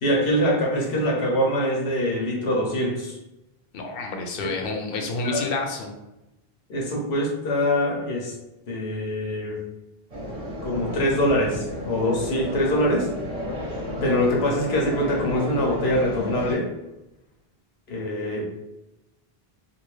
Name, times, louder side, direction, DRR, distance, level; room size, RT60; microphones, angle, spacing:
voice 1, 0.0-3.2 4.4-5.4 6.7-8.3 8.7-9.6 10.6-13.1 14.0-16.7 17.9-18.4, left 1 dB, 90° left, -2 dB, 1.1 m, -24 dB
voice 2, 3.7-5.9, left 3 dB, 65° left, 3 dB, 0.8 m, -29 dB
sound 1, 10.1-16.5, left 1 dB, 40° right, 0.8 m, -32 dB
2.7 x 2.5 x 3.1 m, 0.95 s
omnidirectional pair, 1.0 m